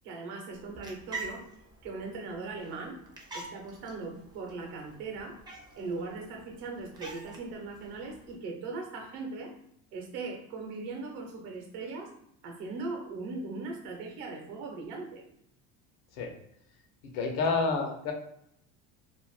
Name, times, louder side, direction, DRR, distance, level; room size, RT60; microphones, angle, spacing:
voice 1, 0.0-1.4 1.8-3.0 3.3-5.4 5.8-9.5 9.9-12.1 12.4-15.2, right 3 dB, 70° right, 1 dB, 0.9 m, -39 dB
sound 1, 0.5-8.3, right 3 dB, 10° right, 0.4 m, -47 dB
voice 2, 17.1-18.1, left 4 dB, 75° left, 2 dB, 0.8 m, -28 dB
2.5 x 2.0 x 3.1 m, 0.74 s
cardioid pair, 120°, 36 cm